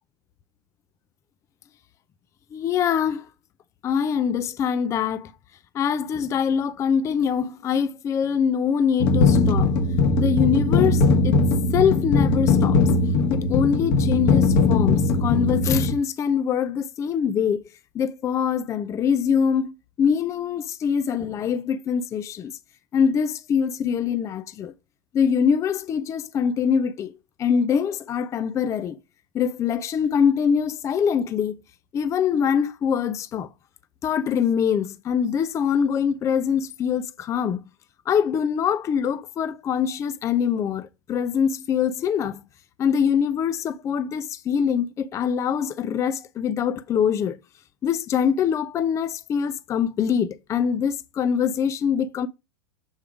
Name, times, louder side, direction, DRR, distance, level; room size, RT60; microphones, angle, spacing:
voice 1, 2.5-3.3 3.8-5.3 5.7-9.8 10.2-11.4 11.7-12.8 13.3-17.7 17.9-22.5 22.9-24.7 25.1-29.0 29.3-31.6 31.9-33.5 34.0-37.6 38.1-42.4 42.8-47.4 47.8-52.3, left 7 dB, 25° left, 0.4 m, -24 dB
sound 1, 9.0-15.9, left 3 dB, 50° left, 1.3 m, -20 dB
7.1 x 3.5 x 4.8 m
hypercardioid pair, 105°, 11 cm